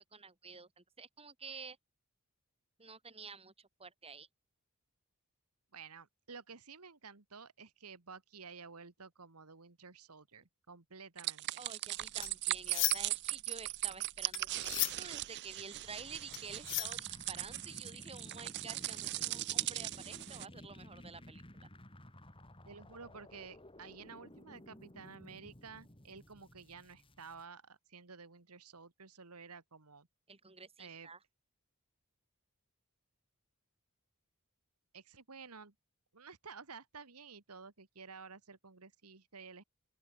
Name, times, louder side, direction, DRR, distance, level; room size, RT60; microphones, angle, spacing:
voice 1, 0.1-1.8 2.8-4.3 11.6-21.7 30.3-31.2, right 4 dB, 25° right, 4.6 m, -50 dB
voice 2, 5.7-11.7 22.7-30.1 30.8-31.1 34.9-35.7 36.1-39.6, right 5 dB, 90° right, 1.9 m, -52 dB
sound 1, 11.2-20.5, right 17 dB, 50° right, 0.4 m, -39 dB
sound 2, 12.0-13.3 13.6-17.6, left 19 dB, 55° left, 0.6 m, -38 dB
sound 3, 15.8-27.4, left 1 dB, 25° left, 4.4 m, -55 dB
open air
head